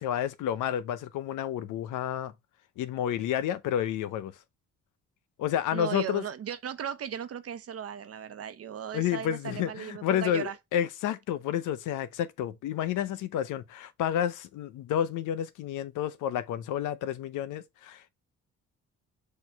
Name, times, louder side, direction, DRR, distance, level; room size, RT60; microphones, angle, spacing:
voice 1, 0.0-2.3 2.8-4.3 5.4-6.2 8.9-18.1, left 10 dB, 85° left, 0.8 m, -30 dB
voice 2, 5.7-10.6, right 8 dB, 50° right, 0.9 m, -36 dB
6.5 x 3.2 x 4.6 m
cardioid pair, 90°, 30 cm